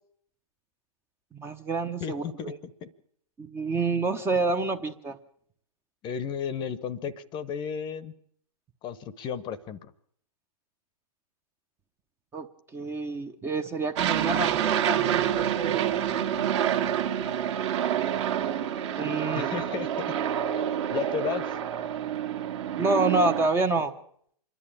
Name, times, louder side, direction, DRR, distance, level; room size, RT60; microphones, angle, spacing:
voice 1, 1.3-2.6 3.4-5.2 12.3-12.5 12.7-15.8 19.0-19.5 22.8-23.9, right 3 dB, 10° right, 9 dB, 0.8 m, -28 dB
voice 2, 2.0-2.5 2.8-2.9 6.0-8.1 8.8-9.9 19.3-20.0 20.9-21.6, left 7 dB, 20° left, 18 dB, 0.9 m, -33 dB
Aircraft, 14.0-23.5, right 10 dB, 45° right, 1.8 m, -27 dB
26.5 x 11.0 x 8.7 m, 0.64 s
hypercardioid pair, 135°, 20 cm